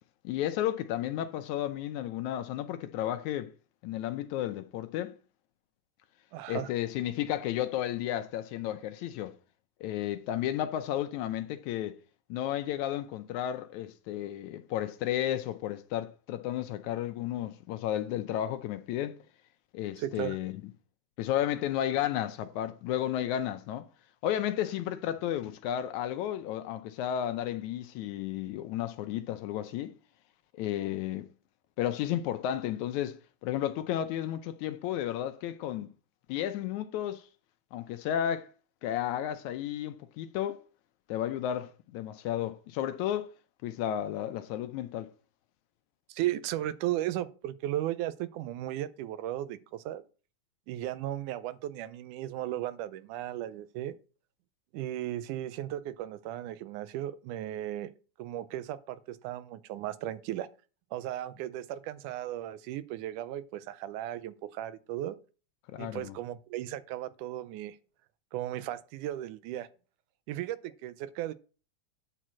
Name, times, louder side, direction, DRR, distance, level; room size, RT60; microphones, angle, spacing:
voice 1, 0.2-3.5 3.8-5.1 6.5-9.4 9.8-12.0 12.3-19.2 19.7-20.5 21.2-23.9 24.2-29.9 30.5-31.3 31.8-35.9 36.3-37.2 37.7-38.5 38.8-40.6 41.1-43.3 43.6-45.1 65.7-66.1, left 11 dB, 75° left, 1.9 m, -33 dB
voice 2, 6.3-6.7 20.0-20.4 46.1-50.0 50.7-54.0 54.7-57.9 58.2-60.5 60.9-65.2 65.8-67.8 68.3-69.7 70.3-71.3, right 13 dB, 85° right, 2.1 m, -36 dB
9.1 x 4.4 x 7.3 m
omnidirectional pair, 3.6 m